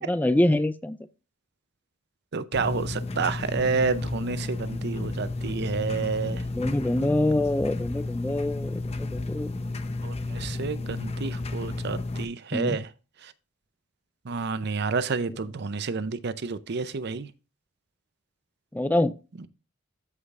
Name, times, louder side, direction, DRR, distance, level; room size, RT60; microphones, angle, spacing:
voice 1, 0.0-1.0 6.5-9.5 12.5-12.8 18.7-19.1, left 1 dB, 10° left, 0.3 m, -25 dB
voice 2, 2.3-6.4 10.0-12.9 14.3-17.3, right 4 dB, 55° right, 0.6 m, -29 dB
sound 1, 2.5-12.2, left 2 dB, 30° left, 0.7 m, -32 dB
13.5 x 5.0 x 2.5 m
head